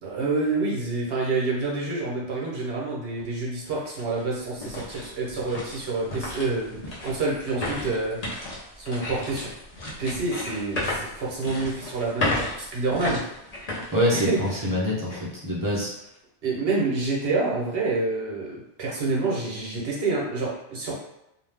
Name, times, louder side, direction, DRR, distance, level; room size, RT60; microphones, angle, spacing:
voice 1, 0.0-9.5 10.0-13.2 14.1-14.4 16.4-21.0, right 3 dB, 60° right, -3 dB, 1.0 m, -28 dB
sound 1, 3.2-3.3 3.8-14.7 15.1-15.2 15.8-16.1, left 2 dB, 40° left, 0.7 m, -34 dB
voice 2, 13.9-15.9, equal, 20° right, -6 dB, 0.7 m, -25 dB
2.5 x 2.3 x 3.4 m, 0.84 s
omnidirectional pair, 1.2 m